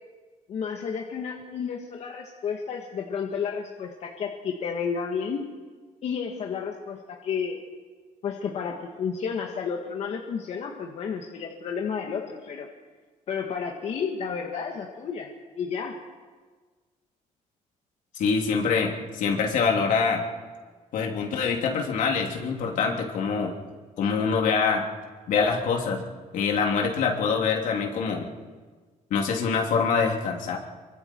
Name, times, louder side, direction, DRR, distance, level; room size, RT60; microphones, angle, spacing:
voice 1, 0.5-5.4 6.0-7.6 8.2-12.7 13.3-15.3 15.6-16.0, left 6 dB, 55° left, 1 dB, 1.8 m, -31 dB
voice 2, 18.2-20.2 20.9-23.5 24.0-24.8 25.3-26.0 26.3-28.3 29.1-30.6, left 5 dB, 75° left, 1 dB, 3.2 m, -25 dB
26.5 x 24.0 x 4.7 m, 1.4 s
cardioid pair, 155°, 14 cm